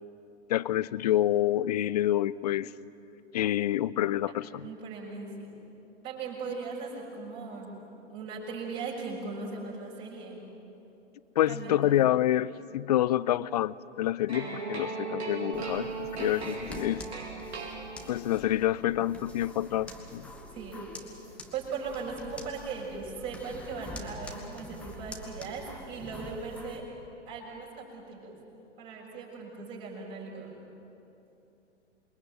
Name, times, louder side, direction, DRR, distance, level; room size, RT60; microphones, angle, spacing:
voice 1, 0.5-2.7 3.3-4.7 11.4-17.0 18.1-20.3, left 13 dB, 35° left, 20 dB, 0.6 m, -27 dB
voice 2, 4.6-5.6 6.0-7.8 8.1-10.4 11.5-12.0 20.5-20.9 21.5-26.8 27.3-28.4 28.8-30.6, right 4 dB, 30° right, -3 dB, 6.8 m, -38 dB
sound 1, 14.3-18.4, right 4 dB, 65° right, 4.8 m, -37 dB
sound 2, 15.5-26.8, equal, 5° left, 2.2 m, -46 dB
28.0 x 23.0 x 9.2 m, 2.9 s
figure-of-eight pair, 115°, 35 cm